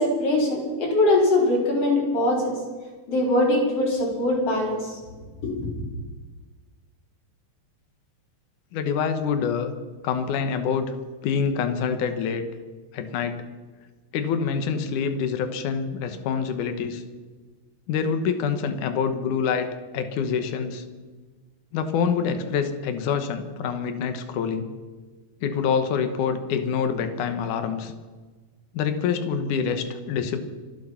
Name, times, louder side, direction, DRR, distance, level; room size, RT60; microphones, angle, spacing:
voice 1, 0.0-2.5 3.1-5.0 5.4-5.7, left 1 dB, 50° left, -2 dB, 5.1 m, -22 dB
voice 2, 8.7-9.7 10.0-10.9 11.2-12.4 12.9-13.4 14.1-17.0 17.9-20.8 21.7-24.7 25.4-27.9 28.7-30.4, left 6 dB, 80° left, 8 dB, 2.8 m, -26 dB
25.5 x 9.5 x 5.8 m, 1.3 s
omnidirectional pair, 3.5 m